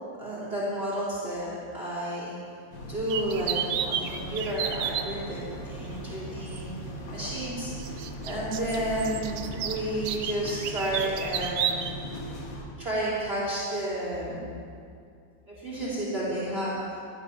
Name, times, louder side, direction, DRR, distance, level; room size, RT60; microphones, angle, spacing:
voice 1, 0.2-2.4 2.8-11.9 12.8-14.4 15.5-17.0, right 1 dB, 30° right, -7 dB, 3.4 m, -32 dB
sound 1, 2.7-12.6, equal, 90° left, 2.5 m, -39 dB
sound 2, 3.1-5.1 6.5-6.6 7.8-11.9, right 9 dB, 80° right, 1.4 m, -31 dB
16.5 x 10.5 x 5.8 m, 2.4 s
omnidirectional pair, 2.0 m